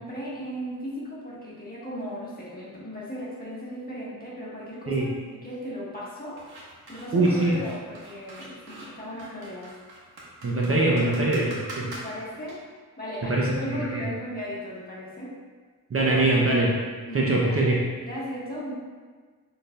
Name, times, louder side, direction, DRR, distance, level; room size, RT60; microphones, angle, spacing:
voice 1, 0.0-5.1 5.4-6.4 6.9-9.7 11.8-12.6 13.0-15.3 17.0-17.7 18.0-18.8, equal, 25° left, -7 dB, 1.4 m, -36 dB
sound 1, 6.4-12.5, right 2 dB, 85° right, 1.4 m, -43 dB
voice 2, 7.1-7.6 10.4-11.9 13.2-14.1 15.9-16.8 17.1-17.7, right 2 dB, 40° right, -3 dB, 0.6 m, -23 dB
6.4 x 3.3 x 2.3 m, 1.5 s
wide cardioid pair, 100°, 37 cm